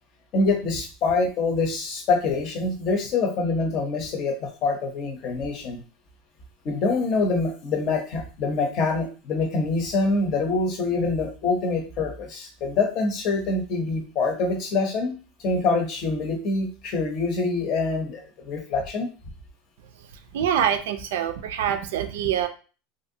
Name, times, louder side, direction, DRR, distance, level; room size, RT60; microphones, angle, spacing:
voice 1, 0.3-5.8 6.6-15.2 15.4-19.1, left 3 dB, 40° left, 4 dB, 0.7 m, -25 dB
voice 2, 20.3-22.5, right 9 dB, 90° right, 8 dB, 0.4 m, -25 dB
3.2 x 2.5 x 2.7 m, 0.36 s
supercardioid pair, 165°, 0 cm